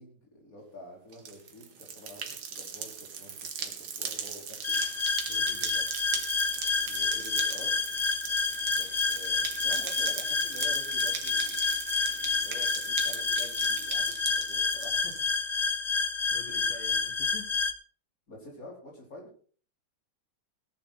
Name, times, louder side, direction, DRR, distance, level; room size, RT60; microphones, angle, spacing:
voice 1, 0.0-4.8 5.7-5.8 6.1-6.2 6.7-7.7 8.7-15.5 18.3-19.3, left 1 dB, 40° left, -1 dB, 5.2 m, -48 dB
sound 1, 1.1-15.3, right 6 dB, 70° right, 2.3 m, -38 dB
sound 2, 4.6-17.7, left 4 dB, 65° left, 0.4 m, -29 dB
voice 2, 5.3-5.8 16.3-17.5, left 3 dB, 80° left, 2 dB, 2.9 m, -47 dB
17.5 x 10.5 x 4.2 m, 0.43 s
omnidirectional pair, 2.3 m